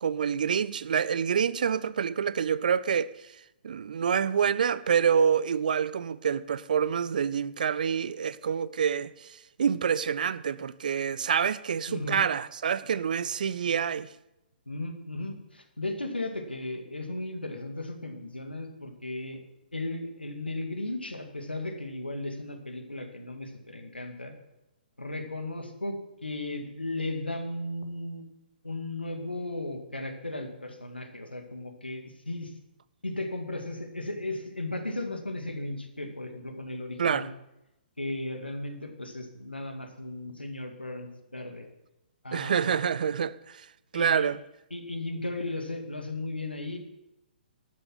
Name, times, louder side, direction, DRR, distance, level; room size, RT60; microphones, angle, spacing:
voice 1, 0.0-3.1 3.6-14.1 37.0-37.3 42.3-43.6 43.9-44.4, right 7 dB, 55° right, 0.5 m, -27 dB
voice 2, 11.9-12.2 14.7-19.4 19.7-24.3 25.0-28.2 28.6-32.5 33.0-37.3 38.0-41.7 42.2-42.8 43.9-44.3 44.7-46.8, left 2 dB, 85° left, 2.1 m, -36 dB
12.0 x 9.6 x 6.0 m
figure-of-eight pair, 125°, 5 cm